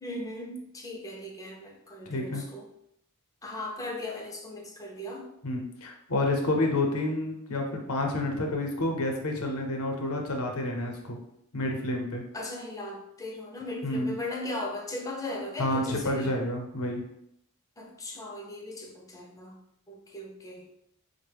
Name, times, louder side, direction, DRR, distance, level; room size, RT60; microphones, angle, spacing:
voice 1, 0.0-2.7 3.4-5.3 12.3-16.4 17.8-19.6 19.9-20.7, left 1 dB, 15° left, 1 dB, 0.4 m, -38 dB
voice 2, 2.1-2.4 5.4-11.2 11.5-12.2 13.8-14.2 15.6-17.0, left 1 dB, 70° left, 2 dB, 0.6 m, -29 dB
3.8 x 2.1 x 3.3 m, 0.76 s
head